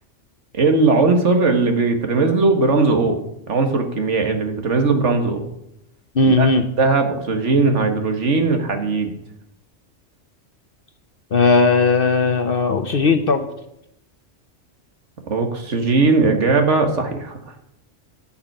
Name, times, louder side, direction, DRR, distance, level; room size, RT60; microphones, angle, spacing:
voice 1, 0.5-3.2 3.5-5.5 6.2-6.5 6.8-9.1 15.3-17.4, right 3 dB, 75° right, 5 dB, 1.9 m, -18 dB
voice 2, 6.2-6.6 11.3-13.4, left 3 dB, 50° left, 7 dB, 1.0 m, -17 dB
11.0 x 5.9 x 9.1 m, 0.82 s
omnidirectional pair, 1.3 m